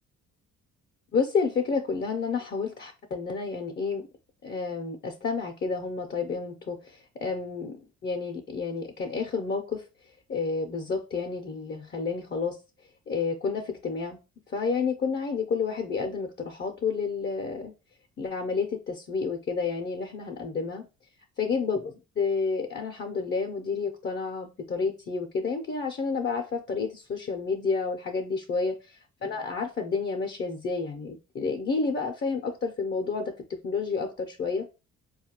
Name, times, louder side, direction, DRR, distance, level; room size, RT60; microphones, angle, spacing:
voice 1, 1.1-4.1 4.4-9.8 10.3-12.6 13.1-14.2 14.5-17.7 18.2-20.9 21.4-34.7, left 4 dB, 35° left, 3 dB, 0.6 m, -30 dB
4.4 x 2.3 x 2.8 m, 0.30 s
cardioid pair, 90°, 30 cm